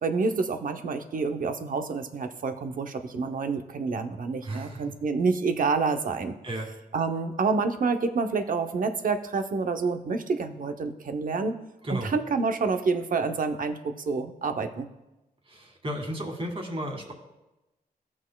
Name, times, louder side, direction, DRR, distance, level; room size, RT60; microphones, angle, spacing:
voice 1, 0.0-6.4 6.9-11.6 11.9-14.9, right 4 dB, 60° right, 7 dB, 0.8 m, -28 dB
voice 2, 4.4-4.8 6.4-6.7 11.8-12.1 15.5-17.1, right 1 dB, 35° right, 1 dB, 2.0 m, -33 dB
16.5 x 6.1 x 2.3 m, 1.0 s
cardioid pair, 85°, 16 cm